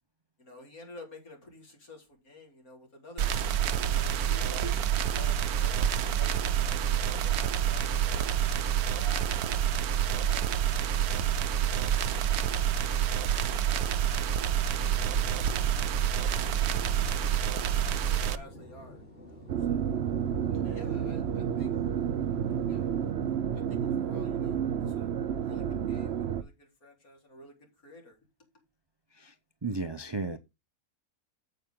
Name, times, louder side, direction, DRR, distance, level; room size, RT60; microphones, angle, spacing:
voice 1, 0.4-4.7 5.1-8.3 8.9-9.7 9.9-12.5 13.4-14.7 15.8-17.3 17.8-20.0 20.6-21.7 22.7-22.9 23.2-25.1 25.4-28.2, left 2 dB, 70° left, 4.1 m, -52 dB
sound 1, 3.2-18.4, right 9 dB, 85° right, 1.2 m, -28 dB
sound 2, 14.1-23.1, equal, 30° left, 3.2 m, -48 dB
sound 3, 19.5-26.4, right 8 dB, 55° right, 0.8 m, -30 dB
voice 2, 29.6-30.4, right 3 dB, 40° right, 0.4 m, -34 dB
9.0 x 7.8 x 3.7 m
omnidirectional pair, 1.6 m